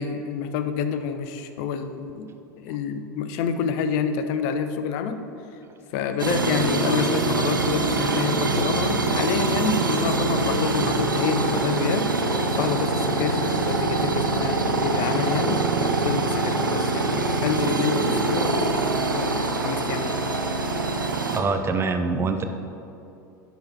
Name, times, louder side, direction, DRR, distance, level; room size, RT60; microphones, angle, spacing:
voice 1, 0.0-2.3 2.6-5.2 5.9-12.1 12.5-20.1, left 6 dB, 55° left, 9 dB, 0.6 m, -28 dB
sound 1, 6.2-21.4, right 3 dB, 90° right, 0.6 m, -24 dB
voice 2, 21.3-22.4, right 4 dB, 25° right, 7 dB, 0.6 m, -24 dB
10.0 x 4.0 x 4.4 m, 2.7 s
figure-of-eight pair, 80°, 11 cm